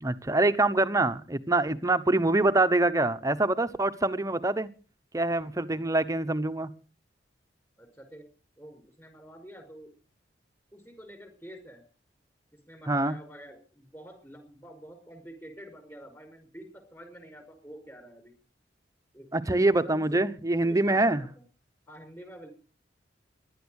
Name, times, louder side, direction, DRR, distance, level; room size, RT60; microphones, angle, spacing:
voice 1, 0.0-4.7 5.1-6.7 12.9-13.1 19.3-21.2, right 2 dB, 20° right, 0.9 m, -25 dB
voice 2, 7.8-8.3 8.6-9.9 10.7-11.8 12.6-18.3 19.1-19.3 19.8-20.2 20.6-21.4 21.9-22.5, equal, 15° left, 5.3 m, -47 dB
17.0 x 11.5 x 6.4 m
head